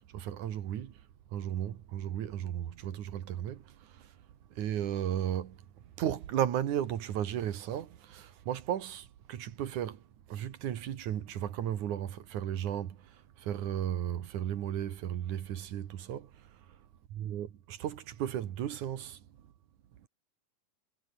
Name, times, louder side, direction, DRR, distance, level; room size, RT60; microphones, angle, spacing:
voice 1, 0.0-4.2 4.5-16.8 17.1-19.3 20.0-20.1, right 10 dB, 65° right, 2.9 m, -35 dB
omnidirectional pair, 3.9 m